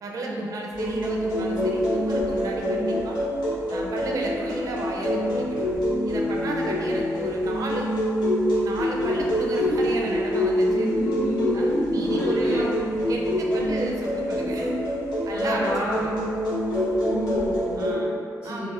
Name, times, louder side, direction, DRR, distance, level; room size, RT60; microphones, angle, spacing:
voice 1, 0.0-3.2 3.7-5.7 6.0-7.9 8.6-10.9 11.5-12.7 13.1-14.8 15.2-16.1 17.8-18.7, right 2 dB, 60° right, -1 dB, 0.4 m, -32 dB
sound 1, 0.7-17.9, equal, 85° left, 0.9 m, -25 dB
voice 2, 10.7-12.7 15.3-16.1 17.0-17.7 18.4-18.7, equal, 25° left, -10 dB, 0.7 m, -29 dB
4.0 x 2.2 x 2.3 m, 2.4 s
wide cardioid pair, 140°, 7 cm